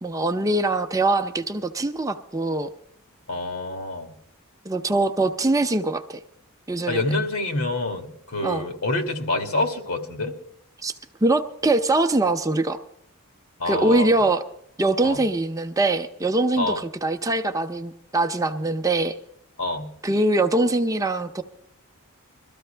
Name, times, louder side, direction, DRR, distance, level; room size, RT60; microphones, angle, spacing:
voice 1, 0.0-2.7 4.6-6.2 6.7-7.0 8.4-8.6 10.8-10.9 11.2-12.8 13.6-14.4 14.8-19.2 20.0-21.4, right 2 dB, 15° right, 7 dB, 0.6 m, -23 dB
voice 2, 3.3-4.1 6.9-10.3 13.6-14.1 15.0-15.2 16.6-16.8 19.6-19.9, left 2 dB, 75° left, 4 dB, 2.3 m, -27 dB
22.5 x 13.5 x 3.4 m, 0.69 s
head